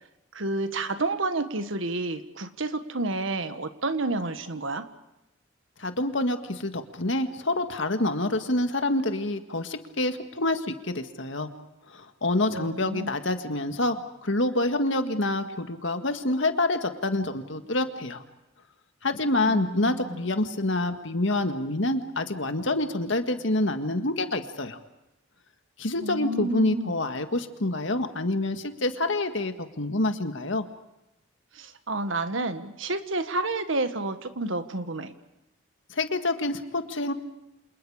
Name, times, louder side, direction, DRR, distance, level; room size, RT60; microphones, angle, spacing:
voice 1, 0.3-4.8 12.5-13.1 19.5-20.0 26.0-26.9 31.5-35.1, right 2 dB, 75° right, 10 dB, 1.6 m, -30 dB
voice 2, 5.8-11.5 11.9-18.2 19.0-24.8 25.8-30.6 35.9-37.1, left 2 dB, 65° left, 7 dB, 1.9 m, -27 dB
29.0 x 27.5 x 5.0 m, 0.90 s
head